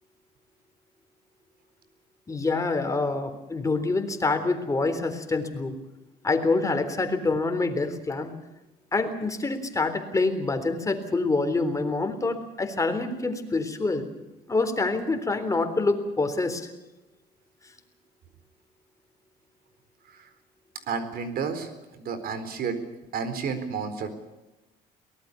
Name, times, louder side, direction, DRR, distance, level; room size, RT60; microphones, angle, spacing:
voice 1, 2.3-5.8 6.2-8.3 8.9-14.1 14.5-16.7, left 3 dB, 20° left, 7 dB, 3.8 m, -26 dB
voice 2, 20.9-21.7 22.0-22.8 23.1-24.1, right 5 dB, 65° right, 10 dB, 4.2 m, -31 dB
23.5 x 19.0 x 7.0 m, 1.1 s
cardioid pair, 110°, 17 cm